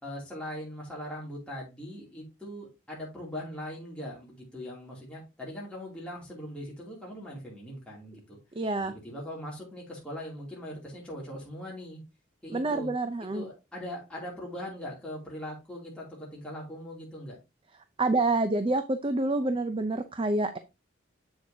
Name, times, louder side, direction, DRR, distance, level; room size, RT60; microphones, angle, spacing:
voice 1, 0.0-8.4 8.9-12.0 12.4-12.9 13.3-17.4, equal, 5° left, -5 dB, 2.8 m, -40 dB
voice 2, 8.5-8.9 12.5-13.4 18.0-20.6, right 2 dB, 25° right, 9 dB, 0.5 m, -27 dB
7.7 x 6.9 x 2.8 m, 0.25 s
head